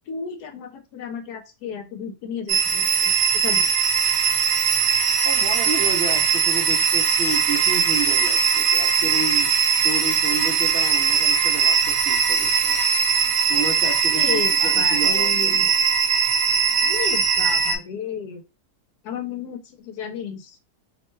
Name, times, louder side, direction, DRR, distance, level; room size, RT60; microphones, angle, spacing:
voice 1, 0.1-3.7 14.1-15.7 16.8-18.4 19.0-20.6, left 7 dB, 80° left, 8 dB, 1.1 m, -33 dB
sound 1, 2.5-17.8, right 6 dB, 75° right, 1.1 m, -20 dB
voice 2, 5.2-9.5 9.8-12.8 13.5-15.7, right 2 dB, 55° right, -2 dB, 0.6 m, -31 dB
2.9 x 2.2 x 3.1 m, 0.26 s
omnidirectional pair, 1.7 m